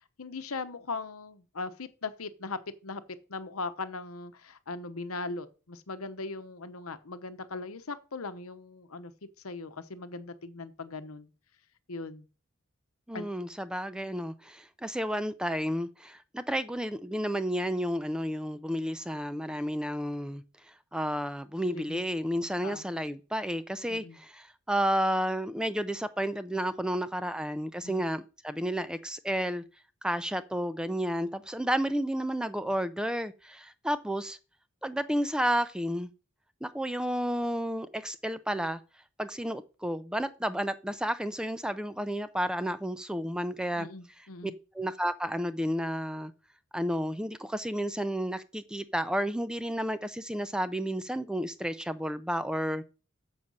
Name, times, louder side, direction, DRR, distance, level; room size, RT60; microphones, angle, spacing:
voice 1, 0.2-9.1 9.4-11.3 11.9-12.3 13.1-13.3 21.7-22.0 22.6-22.9 23.9-24.2 27.8-28.0 43.8-44.5, left 3 dB, 90° left, 0.9 m, -39 dB
voice 2, 13.1-29.6 30.0-34.4 34.8-36.1 36.6-38.8 39.2-43.9 44.4-46.3 46.7-52.9, equal, 5° right, 0.4 m, -31 dB
7.2 x 6.3 x 5.4 m
head